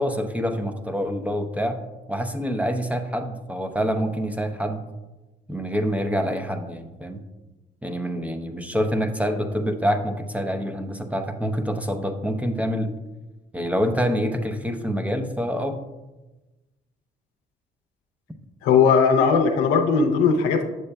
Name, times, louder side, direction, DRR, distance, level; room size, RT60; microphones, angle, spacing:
voice 1, 0.0-1.8 2.1-4.8 5.5-7.2 7.8-12.9 13.5-15.8, equal, 5° right, 5 dB, 0.7 m, -26 dB
voice 2, 18.6-20.6, left 5 dB, 85° left, 4 dB, 0.7 m, -18 dB
8.0 x 6.8 x 2.2 m, 1.1 s
hypercardioid pair, 50°, 21 cm